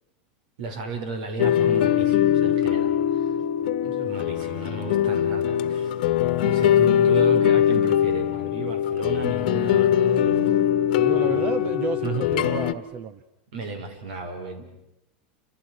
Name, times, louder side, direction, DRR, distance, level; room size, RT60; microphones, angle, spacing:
voice 1, 0.6-3.4 3.8-5.9 6.4-10.6 11.1-11.5 12.0-12.3 13.5-14.7, right 4 dB, 65° right, 7 dB, 5.6 m, -34 dB
sound 1, 1.4-12.7, left 10 dB, 60° left, 1.5 m, -21 dB
voice 2, 11.0-13.2, right 6 dB, 30° right, 12 dB, 0.9 m, -30 dB
30.0 x 26.5 x 6.4 m, 0.87 s
supercardioid pair, 170°, 5 cm